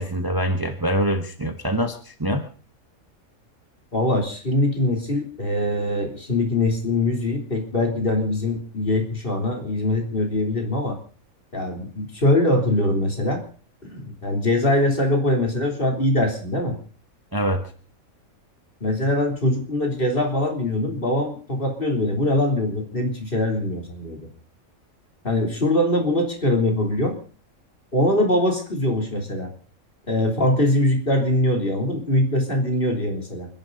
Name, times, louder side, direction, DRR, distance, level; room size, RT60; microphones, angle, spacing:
voice 1, 0.0-2.5 17.3-17.6, equal, 15° right, 5 dB, 1.3 m, -24 dB
voice 2, 3.9-11.0 11.5-13.4 13.8-16.8 18.8-24.2 25.2-27.2 27.9-29.5 30.1-33.5, left 1 dB, 40° left, 2 dB, 3.6 m, -22 dB
29.0 x 11.0 x 4.0 m, 0.41 s
omnidirectional pair, 1.5 m